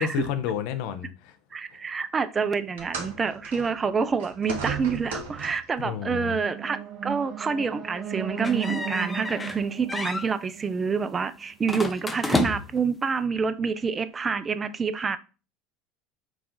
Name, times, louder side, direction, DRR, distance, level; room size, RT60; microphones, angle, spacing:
voice 1, 0.0-1.4 5.8-6.4, left 9 dB, 65° left, 0.6 m, -30 dB
voice 2, 1.5-15.2, right 5 dB, 25° right, 0.4 m, -27 dB
sound 1, 2.8-5.8 6.8-7.0 7.8-7.9, right 5 dB, 75° right, 1.0 m, -36 dB
sound 2, 6.2-11.3, right 9 dB, 45° right, 0.9 m, -36 dB
sound 3, 8.4-9.6 9.9-10.3 11.7-12.9, left 3 dB, 15° left, 0.6 m, -30 dB
4.7 x 2.4 x 3.7 m
hypercardioid pair, 80°, 0 cm